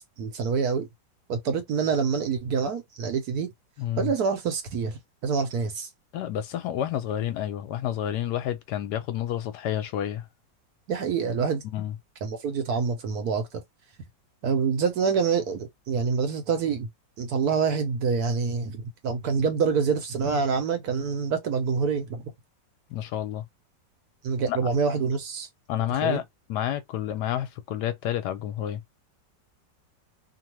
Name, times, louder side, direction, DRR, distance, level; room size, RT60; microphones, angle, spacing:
voice 1, 0.2-0.9 1.3-3.5 4.0-5.9 10.9-11.6 12.2-13.5 14.4-16.9 17.2-22.3 24.2-25.5 26.0-26.2, right 5 dB, 65° right, 1.2 m, -26 dB
voice 2, 3.8-4.1 6.1-10.2 11.6-11.9 22.9-23.4 24.5-24.6 25.7-26.2 26.5-28.8, left 11 dB, 75° left, 1.1 m, -29 dB
3.0 x 2.2 x 2.9 m
omnidirectional pair, 1.9 m